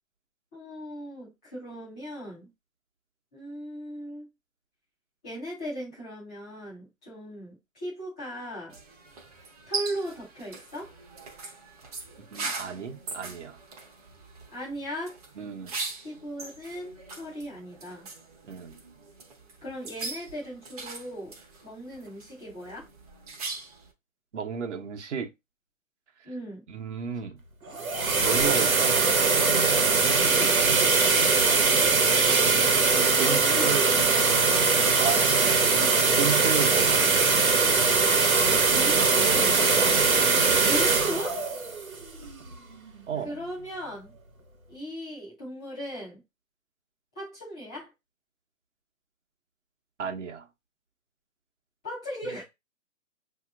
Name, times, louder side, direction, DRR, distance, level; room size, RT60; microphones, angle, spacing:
voice 1, 0.5-2.5 3.3-4.3 5.2-8.7 9.7-10.9 14.5-15.2 16.0-18.1 19.6-21.4 21.6-22.9 26.2-26.7 30.2-30.5 33.3-34.5 38.4-39.6 40.7-41.4 43.2-44.1 44.7-46.2 47.1-47.9 51.8-52.4, equal, 5° left, 0.5 m, -37 dB
sound 1, 8.7-23.9, right 4 dB, 30° right, 0.8 m, -40 dB
voice 2, 12.2-13.6 15.4-15.7 18.4-18.8 24.3-25.3 26.2-26.3 26.7-27.4 28.2-29.0 29.4-30.1 33.2-34.0 34.6-35.7 36.1-37.1 39.8-40.1 43.1-43.3 50.0-50.5, right 7 dB, 60° right, 1.0 m, -33 dB
sound 2, 27.6-42.5, right 4 dB, 85° right, 1.1 m, -22 dB
5.7 x 2.8 x 2.3 m
figure-of-eight pair, 140°, 41 cm